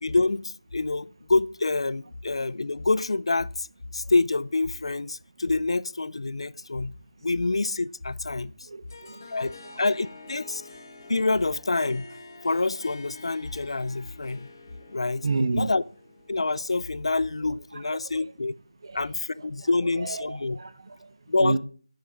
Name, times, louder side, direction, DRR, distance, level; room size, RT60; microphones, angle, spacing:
voice 1, 0.0-3.7 3.9-6.9 7.2-8.5 9.3-10.6 11.1-12.1 12.4-14.5 14.9-15.2 15.5-15.8 16.3-18.5 18.9-20.6 21.3-21.6, left 3 dB, 60° left, 0.4 m, -27 dB
voice 2, 8.4-9.3 9.6-9.8 14.9-15.0 15.2-15.7 17.8-18.3 18.8-19.0 19.4-19.7 20.0-21.1 21.4-21.6, right 3 dB, 45° right, 0.7 m, -31 dB
Harp, 8.9-17.3, left 3 dB, 35° left, 1.2 m, -48 dB
10.5 x 8.6 x 3.5 m
figure-of-eight pair, 170°, 3 cm